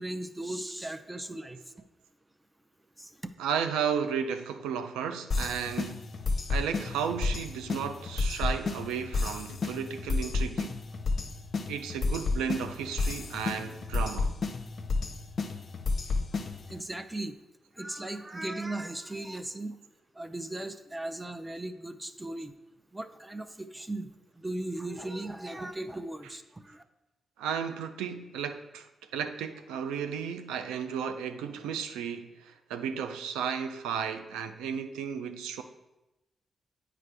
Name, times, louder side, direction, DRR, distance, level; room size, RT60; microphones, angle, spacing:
voice 1, 0.0-1.6 3.0-3.3 16.7-17.3 17.8-19.8 20.2-22.5 22.9-24.1 24.4-26.8, right 1 dB, 20° right, 0.5 m, -37 dB
voice 2, 3.4-6.1 6.5-10.8 11.7-14.3 27.4-28.9 29.1-35.6, right 7 dB, 90° right, 0.4 m, -34 dB
sound 1, 5.3-16.8, left 3 dB, 60° left, 0.5 m, -32 dB
8.3 x 4.9 x 3.3 m
hypercardioid pair, 40°, 0 cm